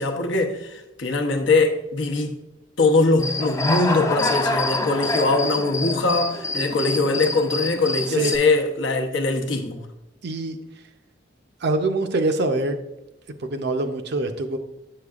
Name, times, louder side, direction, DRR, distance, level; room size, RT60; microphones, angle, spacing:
voice 1, 0.0-2.4 2.8-9.8, left 3 dB, 80° left, 0.8 m, -22 dB
Human voice / Cricket, 3.2-8.4, left 2 dB, 15° left, 0.4 m, -26 dB
voice 2, 10.2-10.6 11.6-12.8 13.5-14.6, right 2 dB, 60° right, 0.6 m, -24 dB
7.5 x 6.6 x 2.4 m
head